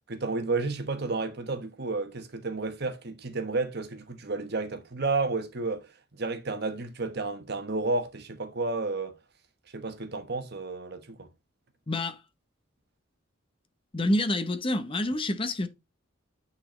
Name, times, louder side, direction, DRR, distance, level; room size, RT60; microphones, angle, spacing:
voice 1, 0.1-9.2 9.7-11.3, right 3 dB, 55° right, 1.1 m, -31 dB
voice 2, 11.9-12.2 13.9-15.7, left 1 dB, 25° left, 0.8 m, -27 dB
9.3 x 4.2 x 3.1 m
head